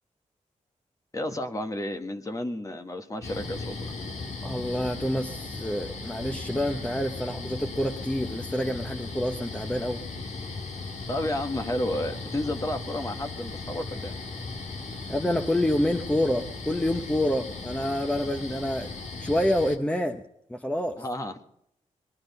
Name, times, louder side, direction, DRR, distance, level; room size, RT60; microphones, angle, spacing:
voice 1, 1.1-3.9 11.1-14.2 21.0-21.3, left 1 dB, 25° left, 6 dB, 1.4 m, -31 dB
sound 1, 3.2-19.8, left 3 dB, 65° left, 1.8 m, -37 dB
voice 2, 4.4-10.0 15.1-18.9 19.2-20.2 20.5-21.0, left 1 dB, 10° left, 5 dB, 0.9 m, -27 dB
21.0 x 11.5 x 5.5 m, 0.78 s
cardioid pair, 70°, 13 cm